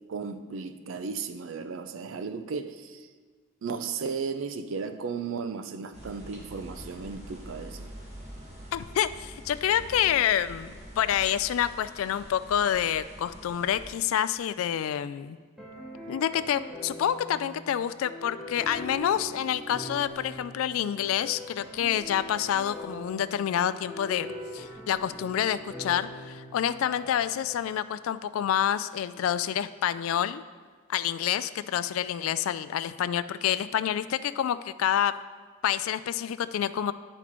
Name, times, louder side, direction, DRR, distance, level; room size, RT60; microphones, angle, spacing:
voice 1, 0.1-3.1 3.6-7.9, right 5 dB, 65° right, 9 dB, 0.5 m, -35 dB
sound 1, 5.9-13.9, equal, 35° right, 1.4 m, -45 dB
voice 2, 8.7-15.4 16.1-30.4 30.9-35.1 35.6-36.9, left 10 dB, 80° left, 15 dB, 0.3 m, -28 dB
sound 2, 15.6-27.6, equal, ahead, 1.0 m, -42 dB
9.9 x 6.0 x 3.0 m, 1.5 s
head